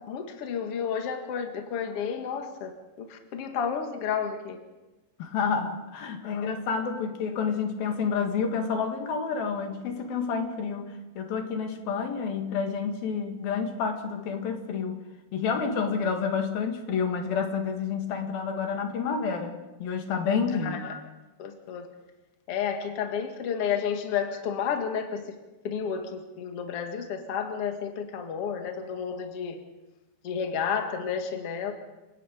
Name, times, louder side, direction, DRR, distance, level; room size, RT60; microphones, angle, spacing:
voice 1, 0.0-4.6 6.2-6.5 20.6-21.0 21.4-21.9 22.5-25.4 25.6-29.6 30.2-31.7, left 7 dB, 45° left, 5 dB, 2.1 m, -31 dB
voice 2, 5.2-15.0 15.3-20.8, left 6 dB, 65° left, 5 dB, 3.4 m, -29 dB
28.5 x 17.5 x 5.2 m, 1.1 s
omnidirectional pair, 5.0 m